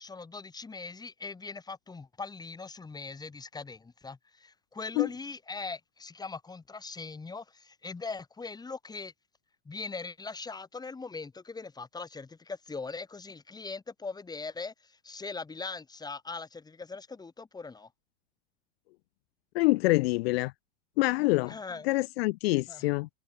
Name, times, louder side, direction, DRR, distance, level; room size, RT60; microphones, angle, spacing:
voice 1, 0.0-9.1 9.6-17.9 21.5-22.0 22.5-22.9, left 4 dB, 10° left, 6.2 m, -41 dB
voice 2, 19.5-20.5 21.0-21.5 21.8-23.1, left 22 dB, 65° left, 0.7 m, -26 dB
supercardioid pair, 135°, 32 cm